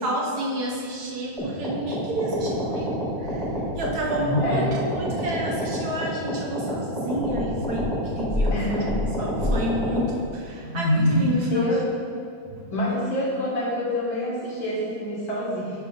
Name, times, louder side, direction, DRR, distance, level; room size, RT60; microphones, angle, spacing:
voice 1, 0.0-4.7 5.0-8.8 9.2-11.7 12.5-12.7, equal, 60° right, -2 dB, 1.2 m, -30 dB
sound 1, 1.4-10.1, equal, ahead, 0.9 m, -29 dB
sound 2, 3.2-5.6 6.0-6.1 7.2-10.2 10.6-11.3, left 1 dB, 40° left, 1.5 m, -27 dB
voice 2, 4.4-4.8 8.5-9.1 11.5-11.8 12.7-15.8, left 1 dB, 75° left, -5 dB, 2.4 m, -27 dB
8.7 x 3.3 x 5.3 m, 2.3 s
omnidirectional pair, 2.1 m